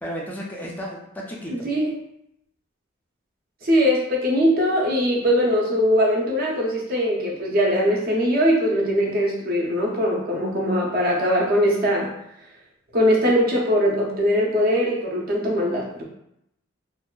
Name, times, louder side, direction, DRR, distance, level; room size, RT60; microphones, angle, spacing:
voice 1, 0.0-1.7, equal, 10° left, -3 dB, 0.3 m, -33 dB
voice 2, 1.5-1.9 3.6-12.1 12.9-16.1, equal, 50° right, -2 dB, 0.6 m, -21 dB
2.6 x 2.2 x 2.3 m, 0.78 s
head